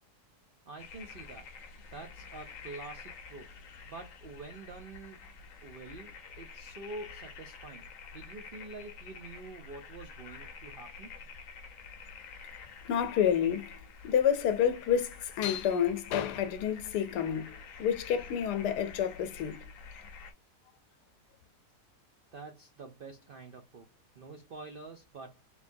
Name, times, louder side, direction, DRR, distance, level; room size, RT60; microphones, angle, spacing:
voice 1, 0.7-1.5 1.9-3.5 3.8-5.2 5.6-7.9 8.1-11.1 22.3-23.9 24.2-25.4, right 3 dB, 75° right, 0.5 m, -46 dB
sound 1, 0.8-20.3, left 5 dB, 60° left, 1.0 m, -49 dB
voice 2, 12.8-13.7 14.0-19.7, left 9 dB, 80° left, 1.2 m, -29 dB
3.3 x 3.2 x 2.6 m
omnidirectional pair, 1.7 m